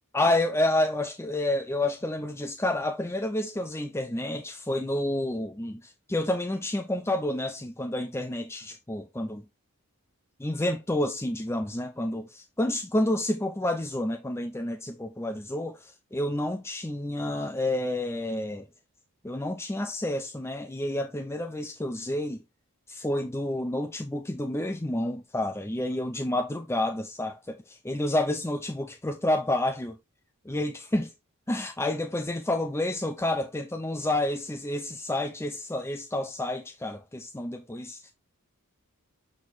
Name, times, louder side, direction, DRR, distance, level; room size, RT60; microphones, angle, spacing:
voice 1, 0.1-9.4 10.4-18.7 19.2-22.4 22.9-30.0 30.4-31.1 31.5-38.1, left 1 dB, 10° left, 0.6 m, -29 dB
6.7 x 6.3 x 2.5 m
head